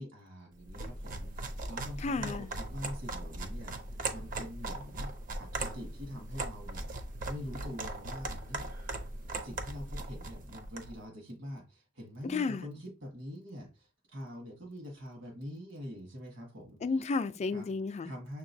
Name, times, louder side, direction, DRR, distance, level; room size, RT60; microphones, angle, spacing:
voice 1, 0.0-5.1 5.4-6.9 7.3-8.7 9.3-16.8 17.5-17.7 18.0-18.4, equal, 70° right, 1.4 m, -44 dB
sound 1, 0.6-10.9, right 2 dB, 45° right, 0.6 m, -39 dB
voice 2, 2.0-2.5 12.2-12.7 16.8-18.1, left 4 dB, 35° left, 0.3 m, -32 dB
6.5 x 2.9 x 2.6 m
head